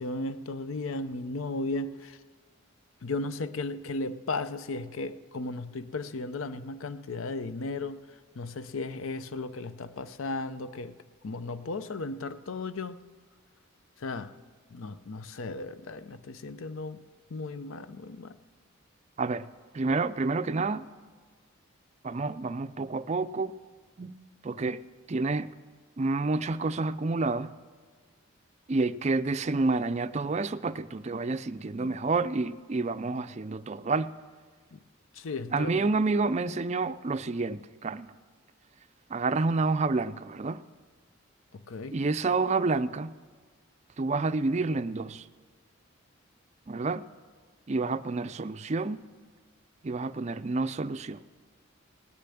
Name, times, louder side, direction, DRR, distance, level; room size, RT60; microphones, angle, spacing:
voice 1, 0.0-2.2 3.0-10.9 11.2-13.0 14.0-14.3 14.7-17.0 17.3-18.4 34.7-34.8 35.1-35.8 41.5-42.0, left 3 dB, 75° left, 0.6 m, -35 dB
voice 2, 19.7-20.9 22.0-23.5 24.0-24.2 24.4-24.8 25.1-25.5 26.0-27.6 28.7-34.1 35.5-38.1 39.1-40.6 41.9-43.2 44.0-45.2 46.7-47.0 47.7-49.0 49.8-51.2, right 3 dB, 35° right, 0.4 m, -29 dB
17.5 x 6.8 x 9.9 m
head